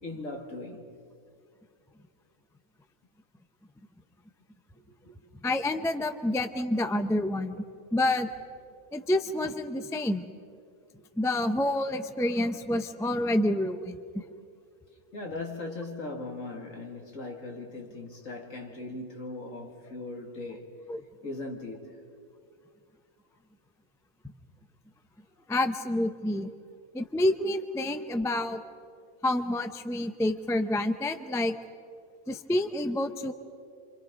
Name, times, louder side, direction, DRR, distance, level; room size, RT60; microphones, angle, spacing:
voice 1, 0.0-0.9 4.9-5.2 15.1-20.7 21.2-22.0, left 2 dB, 60° left, 2.7 m, -39 dB
voice 2, 5.4-7.6 7.9-8.3 8.9-10.2 11.2-14.0 20.9-21.0 25.5-26.5 26.9-28.6 29.2-31.5 32.3-33.3, left 1 dB, 5° left, 0.4 m, -28 dB
28.5 x 26.0 x 5.3 m
omnidirectional pair, 1.6 m